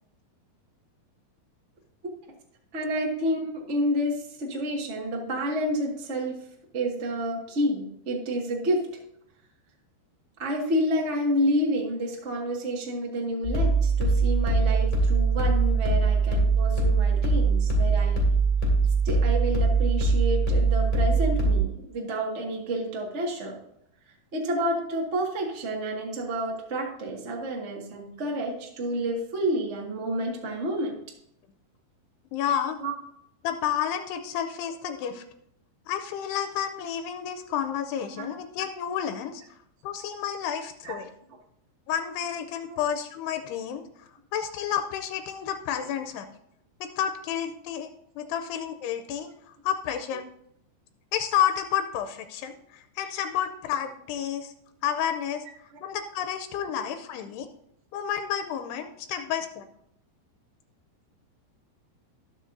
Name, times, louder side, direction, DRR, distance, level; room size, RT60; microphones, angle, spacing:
voice 1, 2.7-6.4 6.7-8.8 10.4-18.2 19.0-23.6 24.3-31.0 32.8-32.9 38.1-38.3 40.8-41.0 42.7-42.8 59.1-59.2, equal, 80° right, -1 dB, 0.6 m, -29 dB
sound 1, 13.4-21.6, right 3 dB, 25° left, 2.6 m, -22 dB
voice 2, 32.3-32.8 33.4-35.2 35.9-39.4 39.8-41.1 41.9-43.8 44.3-46.3 46.8-49.3 49.6-50.2 51.1-54.5 54.8-55.4 55.8-57.5 57.9-59.7, left 9 dB, 90° left, 7 dB, 2.7 m, -30 dB
19.0 x 6.3 x 2.7 m, 0.73 s
omnidirectional pair, 4.7 m